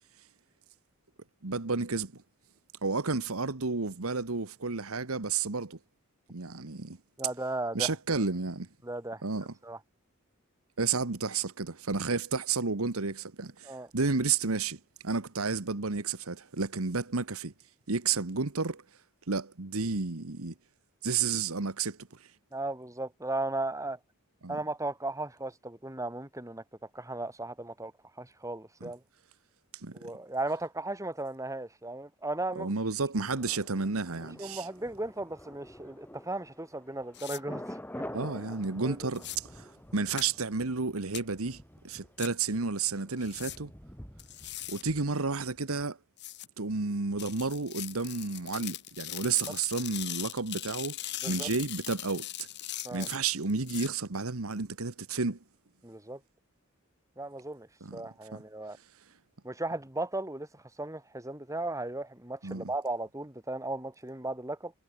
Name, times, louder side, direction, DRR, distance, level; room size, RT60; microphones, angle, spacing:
voice 1, 1.4-2.2 2.8-5.8 6.3-7.0 7.7-8.7 9.2-9.5 10.8-17.5 17.9-18.8 19.3-20.5 21.0-22.0 24.4-24.6 28.8-28.9 29.7-30.0 32.5-34.7 38.1-43.7 44.7-46.0 46.6-52.5 52.9-55.4 57.8-58.0 58.3-58.4 62.4-62.7, right 4 dB, 75° right, 1.4 m, -31 dB
voice 2, 7.2-7.9 8.8-9.2 9.6-9.8 13.6-13.9 22.5-24.0 24.5-26.6 26.9-27.9 28.2-29.0 29.9-32.7 34.4-38.2 38.8-39.1 49.2-49.3 51.2-51.5 52.8-53.1 55.8-56.2 57.2-57.7 57.9-58.8 59.4-64.7, right 2 dB, 15° right, 3.3 m, -36 dB
Thunder, 33.4-45.2 45.5-45.6, left 1 dB, 10° left, 3.2 m, -47 dB
sound 1, 37.1-37.4 39.1-39.4 40.2-40.3 41.1-41.2 42.2-42.3 43.2-43.6 44.2-44.8 46.2-46.5 47.2-53.9, left 14 dB, 55° left, 2.1 m, -40 dB
head